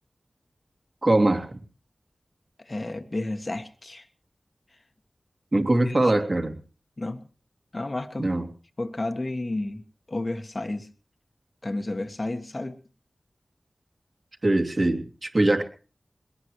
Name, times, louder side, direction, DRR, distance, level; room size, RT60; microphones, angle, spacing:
voice 1, 1.0-1.5 5.5-6.6 8.2-8.4 14.4-15.6, right 2 dB, 50° right, 5 dB, 2.7 m, -22 dB
voice 2, 2.6-4.1 5.8-6.0 7.0-7.3 7.7-8.3 8.8-9.8 10.1-10.9 11.6-12.8, left 2 dB, 45° left, 7 dB, 1.6 m, -31 dB
21.5 x 18.5 x 3.2 m, 0.38 s
cardioid pair, 45°, 0 cm